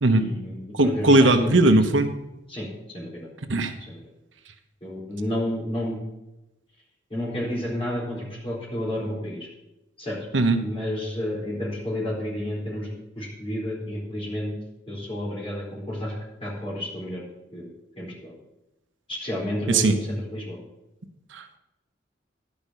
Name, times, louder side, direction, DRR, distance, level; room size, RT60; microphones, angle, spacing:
voice 1, 0.1-1.6 2.5-2.7 2.9-3.3 3.9-4.0 4.8-6.0 7.1-9.5 10.0-10.2 10.6-14.5 14.9-16.1 16.4-17.2 17.5-17.7 18.0-18.3 19.1-20.6, left 1 dB, 30° left, -4 dB, 4.4 m, -31 dB
voice 2, 0.7-2.1 3.5-3.7 10.3-10.6 19.7-20.0 21.3-21.4, right 2 dB, 85° right, 6 dB, 1.0 m, -18 dB
11.5 x 5.3 x 8.3 m, 0.96 s
head